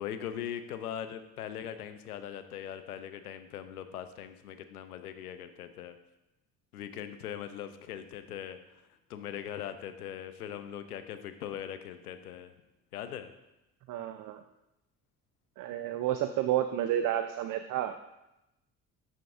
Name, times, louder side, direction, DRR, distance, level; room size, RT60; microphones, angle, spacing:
voice 1, 0.0-6.0 6.7-8.8 9.1-12.5 12.9-13.3, left 9 dB, 90° left, 10 dB, 0.5 m, -40 dB
voice 2, 13.9-14.4 15.6-18.0, right 11 dB, 45° right, 9 dB, 0.5 m, -30 dB
10.5 x 3.6 x 3.5 m, 0.91 s
hypercardioid pair, 50°, 44 cm